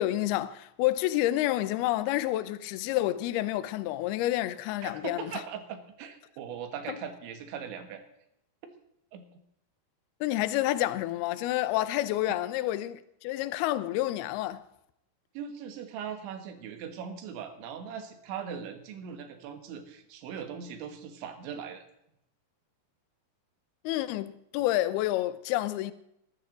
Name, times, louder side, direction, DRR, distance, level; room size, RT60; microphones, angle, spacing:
voice 1, 0.0-5.3 6.9-7.0 10.2-14.7 23.8-25.9, left 15 dB, 75° left, 2.4 m, -29 dB
voice 2, 4.8-8.0 9.1-9.2 12.3-12.4 15.4-21.8, right 7 dB, 85° right, 3.8 m, -40 dB
22.0 x 12.5 x 3.9 m
omnidirectional pair, 5.2 m